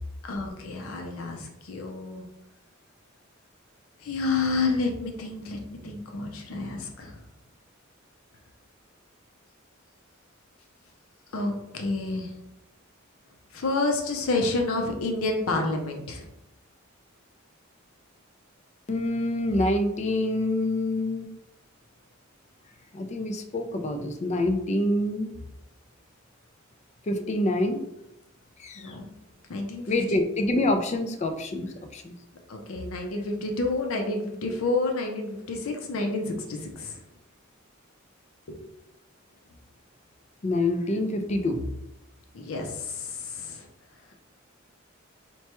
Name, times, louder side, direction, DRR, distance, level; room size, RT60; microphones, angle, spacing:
voice 1, 0.2-2.2 4.0-7.2 11.3-12.3 13.5-16.3 28.8-29.1 29.5-30.2 30.5-30.6 32.5-37.0 38.5-38.6 42.3-43.7, left 3 dB, 80° left, 3 dB, 0.6 m, -29 dB
voice 2, 18.9-21.3 22.9-25.3 27.1-27.8 28.6-28.9 29.9-32.1 40.4-41.6, left 1 dB, 35° left, 6 dB, 0.4 m, -26 dB
4.4 x 2.2 x 2.9 m, 0.84 s
head